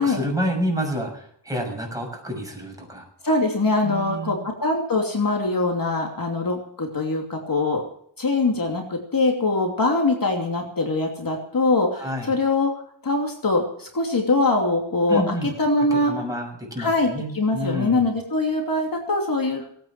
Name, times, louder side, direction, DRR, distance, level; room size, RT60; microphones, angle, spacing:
voice 1, 0.0-3.0 3.8-4.4 12.0-12.3 15.1-15.5 16.1-18.1, equal, 10° right, 0 dB, 6.5 m, -29 dB
voice 2, 3.2-7.8 8.2-12.7 13.0-16.1 16.8-19.6, left 2 dB, 45° left, 1 dB, 2.8 m, -23 dB
19.0 x 9.3 x 7.4 m, 0.65 s
wide cardioid pair, 100°, 45 cm